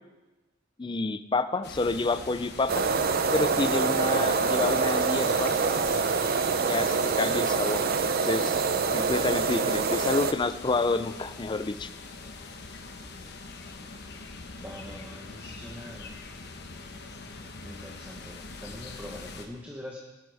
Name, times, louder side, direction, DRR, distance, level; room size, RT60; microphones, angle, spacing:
voice 1, 0.8-2.8 3.3-5.6 6.7-8.7 8.9-11.9, left 3 dB, 25° left, 12 dB, 0.4 m, -29 dB
sound 1, 1.6-19.5, left 3 dB, 55° left, 1.1 m, -43 dB
sound 2, 2.7-10.3, right 5 dB, 45° right, 0.5 m, -25 dB
voice 2, 14.6-16.2 17.6-20.0, left 1 dB, 10° right, -2 dB, 1.1 m, -43 dB
19.0 x 9.4 x 3.5 m, 1.2 s
head